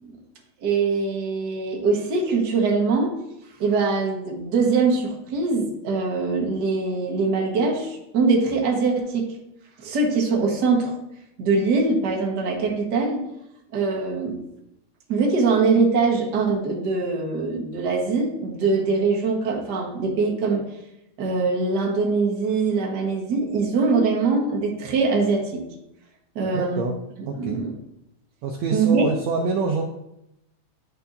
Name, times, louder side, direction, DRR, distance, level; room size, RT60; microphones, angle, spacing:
voice 1, 0.6-3.2 3.6-9.3 9.8-10.9 11.4-13.3 13.7-14.5 15.1-20.6 21.2-25.6 26.3-26.9 27.4-27.7 28.7-29.0, right 4 dB, 45° right, -1 dB, 1.5 m, -22 dB
voice 2, 26.5-27.0 27.3-27.6 28.4-29.8, right 4 dB, 75° right, 2 dB, 1.7 m, -26 dB
12.0 x 4.5 x 2.7 m, 0.84 s
omnidirectional pair, 3.4 m